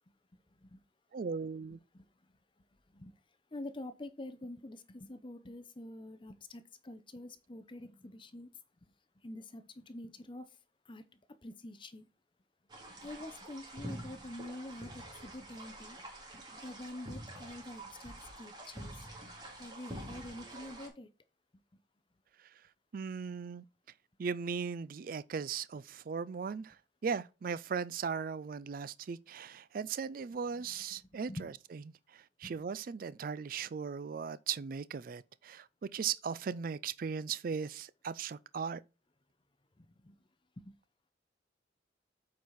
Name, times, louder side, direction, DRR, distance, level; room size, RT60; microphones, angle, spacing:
voice 1, 1.1-1.8 22.9-23.6 24.2-26.7 27.0-35.7 35.9-38.8, right 6 dB, 50° right, 0.4 m, -38 dB
voice 2, 3.5-8.5 9.2-10.5 10.9-11.0 11.4-12.1 13.0-16.0 16.6-18.9 19.6-21.1 31.3-31.5 32.4-32.6 39.8-40.2 40.6-40.7, left 1 dB, 30° left, 0.7 m, -46 dB
sound 1, 12.7-20.9, right 1 dB, 25° right, 2.3 m, -47 dB
8.1 x 4.8 x 4.2 m
head